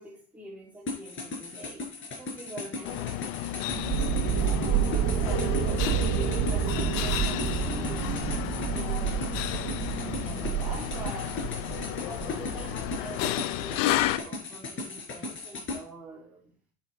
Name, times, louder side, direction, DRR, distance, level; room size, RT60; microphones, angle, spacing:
voice 1, 0.0-4.5 5.1-8.2 8.7-9.4 9.7-11.4 12.0-16.6, right 1 dB, 5° right, -3 dB, 2.9 m, -44 dB
sound 1, 0.9-15.8, left 3 dB, 35° left, 4.9 m, -37 dB
sound 2, 2.8-14.2, left 14 dB, 70° left, 0.8 m, -32 dB
sound 3, 3.7-13.1, right 10 dB, 50° right, 1.3 m, -30 dB
8.5 x 7.3 x 4.6 m, 0.40 s
supercardioid pair, 100°, 34 cm